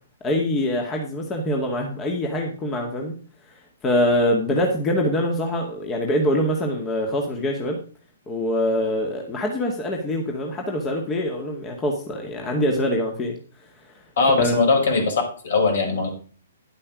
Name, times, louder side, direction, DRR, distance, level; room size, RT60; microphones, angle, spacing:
voice 1, 0.2-3.2 3.8-7.8 8.3-13.4 14.4-14.6, left 1 dB, 20° left, 1 dB, 2.1 m, -24 dB
voice 2, 14.2-16.1, left 3 dB, 65° left, 3 dB, 5.2 m, -20 dB
10.5 x 8.4 x 4.9 m, 0.41 s
hypercardioid pair, 130°, 0 cm